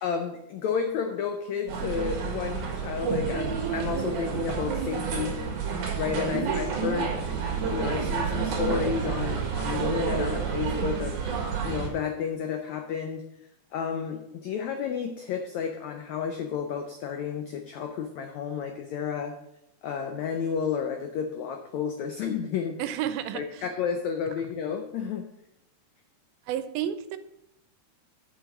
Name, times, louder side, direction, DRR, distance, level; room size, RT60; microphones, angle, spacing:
voice 1, 0.0-5.6 5.9-7.1 7.7-11.2 11.6-13.2 13.7-19.4 19.8-22.8 23.3-25.3, left 7 dB, 85° left, 5 dB, 1.6 m, -31 dB
sound 1, 1.7-11.9, right 5 dB, 60° right, 3.0 m, -29 dB
voice 2, 22.8-23.6 26.5-27.2, right 10 dB, 85° right, 12 dB, 2.5 m, -31 dB
7.8 x 6.2 x 7.1 m, 0.82 s
omnidirectional pair, 4.3 m